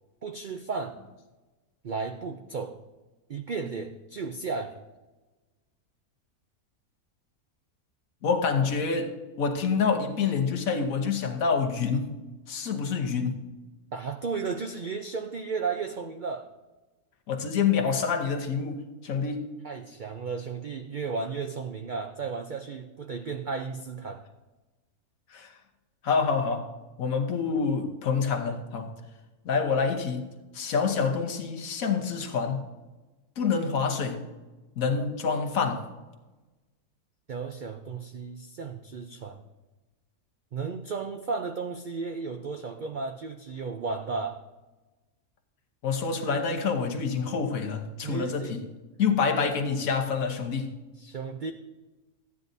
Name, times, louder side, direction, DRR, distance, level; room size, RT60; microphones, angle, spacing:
voice 1, 0.2-1.0 1.8-2.8 3.3-4.8 13.9-16.5 19.6-24.2 37.3-39.4 40.5-44.4 48.0-48.5 51.0-51.5, right 4 dB, 80° right, 6 dB, 0.4 m, -34 dB
voice 2, 8.2-12.1 12.5-13.4 17.3-19.5 25.3-25.5 26.0-26.7 27.0-28.9 29.4-30.3 30.5-32.6 33.4-34.3 34.8-35.9 45.8-48.7 49.0-50.7, left 5 dB, 70° left, 4 dB, 1.4 m, -27 dB
14.0 x 9.4 x 2.7 m, 1.1 s
omnidirectional pair, 1.6 m